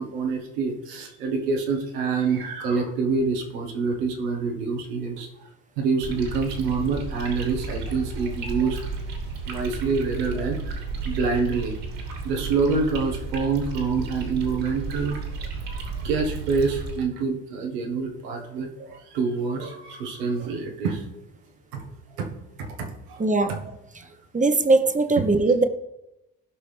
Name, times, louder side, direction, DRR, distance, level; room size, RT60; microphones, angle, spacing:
voice 1, 0.0-5.3 5.8-8.9 9.4-11.8 12.2-21.0 21.7-21.8 22.2-22.3 22.6-23.2 23.5-23.6 25.2-25.3, right 4 dB, 90° right, 1 dB, 1.6 m, -27 dB
sound 1, 6.0-17.0, right 4 dB, 65° right, 2.9 m, -33 dB
voice 2, 23.2-23.5 24.3-25.6, right 3 dB, 15° right, 9 dB, 1.0 m, -20 dB
16.0 x 5.7 x 3.4 m, 0.93 s
hypercardioid pair, 65°, 45 cm